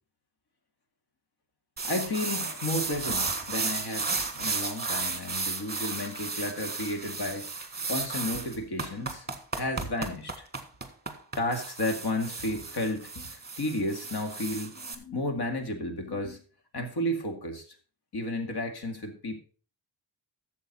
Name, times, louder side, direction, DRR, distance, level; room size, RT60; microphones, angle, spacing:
voice 1, 1.8-7.5 7.9-9.3 9.6-10.5 11.4-16.4 16.7-17.7 18.1-19.4, left 1 dB, 60° left, 5 dB, 2.2 m, -32 dB
sound 1, 1.8-14.9, right 4 dB, 20° right, 1.4 m, -34 dB
12.5 x 7.3 x 4.2 m, 0.39 s
wide cardioid pair, 145°, 45 cm